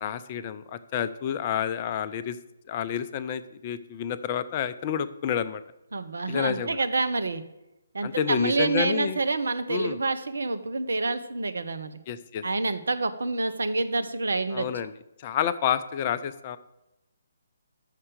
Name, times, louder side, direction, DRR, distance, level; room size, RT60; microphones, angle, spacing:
voice 1, 0.0-2.4 2.7-5.6 6.3-6.8 8.0-9.2 9.7-10.0 12.1-12.4 14.5-14.9 15.2-16.6, left 8 dB, 30° left, 12 dB, 0.4 m, -29 dB
voice 2, 5.9-7.4 7.9-12.0 12.4-14.7, right 3 dB, 65° right, 9 dB, 0.6 m, -27 dB
6.6 x 5.5 x 6.5 m, 0.93 s
figure-of-eight pair, 140°, 0 cm